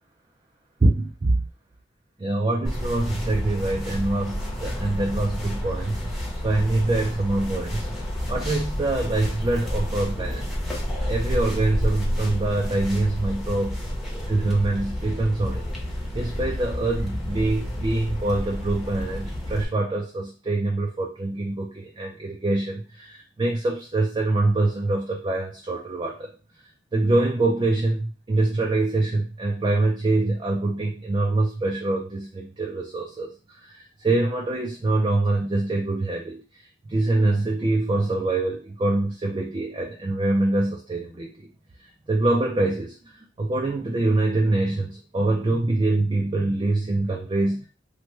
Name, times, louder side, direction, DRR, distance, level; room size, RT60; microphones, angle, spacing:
voice 1, 0.8-1.4 2.2-7.9 8.3-10.5 11.1-13.8 14.3-15.6 16.1-26.3 26.9-33.3 33.6-36.4 36.9-41.3 42.1-43.0 43.4-47.7, right 2 dB, 25° right, 0 dB, 0.4 m, -24 dB
sound 1, 2.6-19.6, equal, ahead, 0.8 m, -30 dB
3.1 x 2.2 x 3.1 m, 0.35 s
head